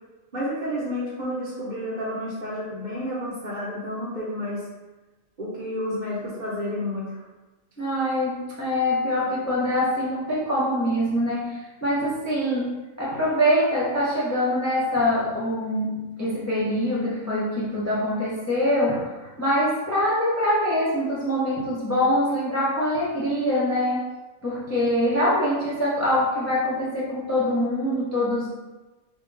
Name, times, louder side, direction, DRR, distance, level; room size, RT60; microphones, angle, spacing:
voice 1, 0.3-4.6 5.4-7.2, left 1 dB, 40° right, -7 dB, 0.8 m, -30 dB
voice 2, 7.8-19.0 19.4-24.1 24.4-28.5, left 1 dB, 20° left, -8 dB, 0.5 m, -24 dB
3.5 x 2.3 x 3.8 m, 1.2 s
omnidirectional pair, 1.4 m